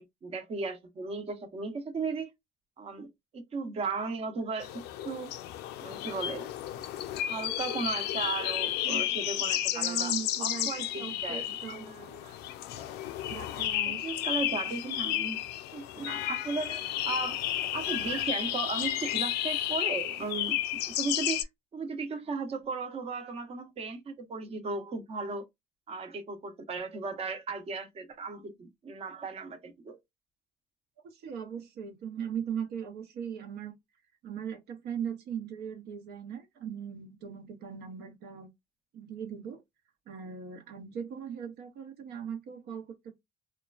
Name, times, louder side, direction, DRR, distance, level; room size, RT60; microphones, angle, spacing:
voice 1, 0.0-2.3 2.8-5.3 5.8-6.5 7.3-10.1 10.4-11.9 12.2-12.3 12.8-13.0 13.8-15.4 15.7-17.4 17.7-25.4 25.9-30.0, right 4 dB, 35° right, 0.7 m, -36 dB
sound 1, 4.6-21.4, left 12 dB, 80° left, 0.4 m, -32 dB
voice 2, 9.7-12.2 13.3-14.1 14.7-14.8 15.4-15.5 31.0-33.7 34.2-38.5 38.9-39.6 40.1-43.1, right 8 dB, 75° right, 0.7 m, -39 dB
2.9 x 2.2 x 2.3 m
cardioid pair, 110°, 17 cm